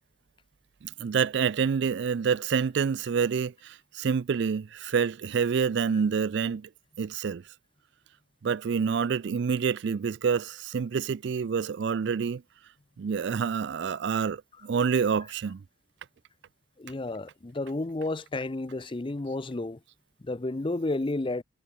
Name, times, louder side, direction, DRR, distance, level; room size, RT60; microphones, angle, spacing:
voice 1, 0.8-6.7 7.0-7.4 8.4-12.4 13.0-15.6, right 6 dB, 60° right, 0.4 m, -27 dB
voice 2, 16.8-19.8 20.2-21.4, left 2 dB, 25° left, 0.5 m, -31 dB
head